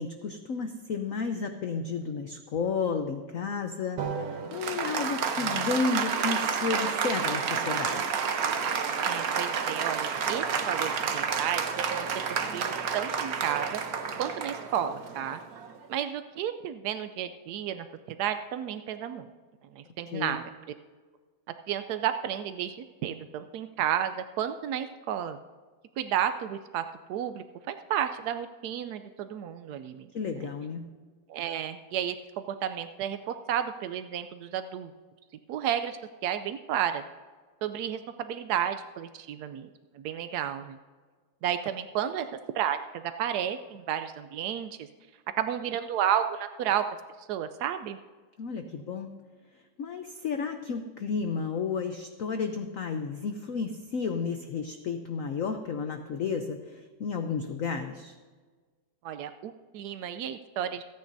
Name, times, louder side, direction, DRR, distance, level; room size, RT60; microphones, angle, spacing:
voice 1, 0.0-8.2 20.1-20.4 30.1-30.9 48.4-49.1 49.8-58.1, left 5 dB, 70° left, 6 dB, 0.8 m, -32 dB
Applause, 4.0-15.9, right 6 dB, 55° right, 1.1 m, -30 dB
voice 2, 9.0-11.6 11.9-12.1 12.5-13.8 14.2-15.4 15.9-19.3 19.7-20.5 21.7-25.4 26.0-30.1 30.4-30.5 31.3-34.9 35.5-37.0 37.6-39.7 39.9-40.8 41.4-42.3 42.5-44.9 45.4-46.9 47.2-48.0 59.0-60.8, right 10 dB, 80° right, 9 dB, 0.9 m, -32 dB
27.0 x 9.3 x 2.7 m, 1.4 s
omnidirectional pair, 2.2 m